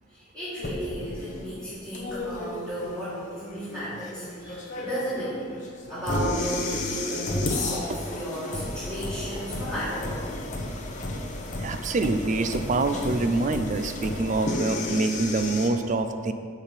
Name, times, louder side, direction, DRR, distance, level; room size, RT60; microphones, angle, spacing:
voice 1, 0.1-5.4 5.9-10.5, equal, 15° right, -12 dB, 1.7 m, -34 dB
sound 1, 0.6-15.7, left 1 dB, 40° left, 0.8 m, -33 dB
voice 2, 11.6-16.3, right 3 dB, 40° right, 9 dB, 0.4 m, -26 dB
6.9 x 4.4 x 5.5 m, 2.1 s
head